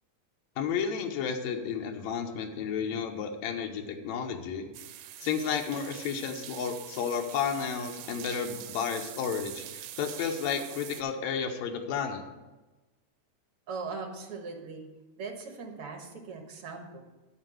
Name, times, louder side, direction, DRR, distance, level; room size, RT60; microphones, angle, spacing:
voice 1, 0.6-4.7 5.2-12.2, left 7 dB, 75° left, 4 dB, 2.1 m, -32 dB
sound 1, 4.7-11.0, right 12 dB, 80° right, 1.9 m, -44 dB
voice 2, 13.7-14.9 15.2-17.0, right 4 dB, 55° right, 2 dB, 2.0 m, -40 dB
10.5 x 4.5 x 7.6 m, 1.1 s
omnidirectional pair, 3.3 m